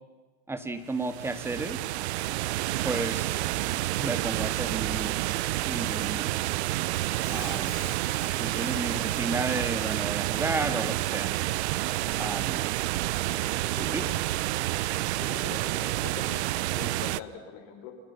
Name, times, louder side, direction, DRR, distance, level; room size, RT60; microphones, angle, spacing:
voice 1, 0.5-1.8 2.8-3.4 4.0-5.1 5.7-6.4 7.3-7.7 8.4-11.4 12.2-12.6 13.9-14.0, right 2 dB, 5° right, 8 dB, 2.0 m, -32 dB
sound 1, 0.9-17.2, right 17 dB, 85° right, 0.8 m, -29 dB
Squeak, 6.7-12.6, left 10 dB, 40° left, 2.9 m, -50 dB
voice 2, 12.0-12.4 13.2-14.2 14.9-17.9, left 7 dB, 60° left, 4 dB, 6.3 m, -44 dB
30.0 x 25.5 x 5.9 m, 1.3 s
supercardioid pair, 150°, 32 cm